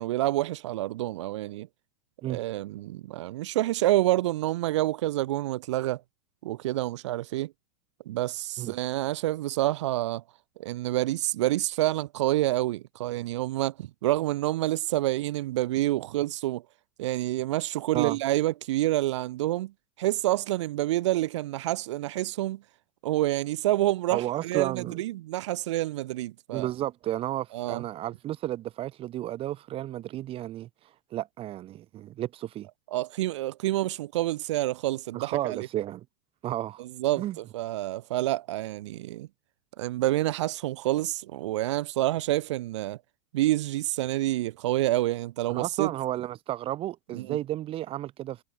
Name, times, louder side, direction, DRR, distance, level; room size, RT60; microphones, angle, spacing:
voice 1, 0.0-1.7 2.3-6.0 6.4-7.5 8.0-10.2 10.6-16.6 17.0-19.7 20.0-22.6 23.0-26.7 27.5-27.8 32.9-35.7 36.8-39.3 39.8-43.0 43.3-45.9 47.1-47.4, right 16 dB, 75° right, 1.6 m, -28 dB
voice 2, 24.1-25.0 26.5-30.7 31.1-32.7 35.1-36.0 36.4-36.8 37.2-37.4 45.5-48.4, right 13 dB, 40° right, 5.1 m, -32 dB
hypercardioid pair, 120°, 15 cm